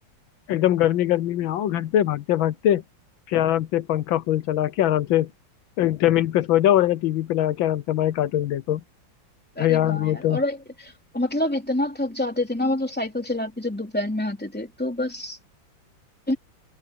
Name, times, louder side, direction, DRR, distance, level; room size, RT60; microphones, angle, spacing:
voice 1, 0.5-2.8 3.3-5.3 5.8-8.8 9.6-10.4, left 12 dB, 80° left, 1.5 m, -22 dB
voice 2, 9.6-15.4 16.3-16.4, left 1 dB, 5° left, 3.2 m, -27 dB
omnidirectional pair, 2.1 m